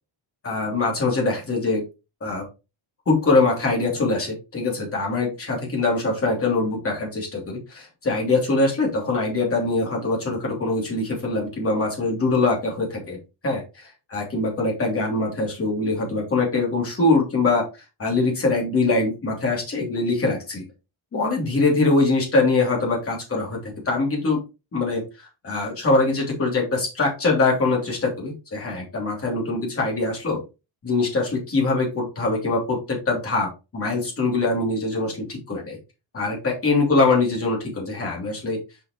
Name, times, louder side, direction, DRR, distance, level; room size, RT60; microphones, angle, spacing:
voice 1, 0.4-1.8 2.2-2.4 3.1-13.2 13.4-17.7 18.0-20.6 21.1-24.4 24.7-25.0 25.4-30.4 30.8-35.8 36.1-38.6, left 3 dB, 30° left, -2 dB, 3.0 m, -23 dB
6.7 x 5.8 x 3.1 m, 0.28 s
cardioid pair, 175°, 48 cm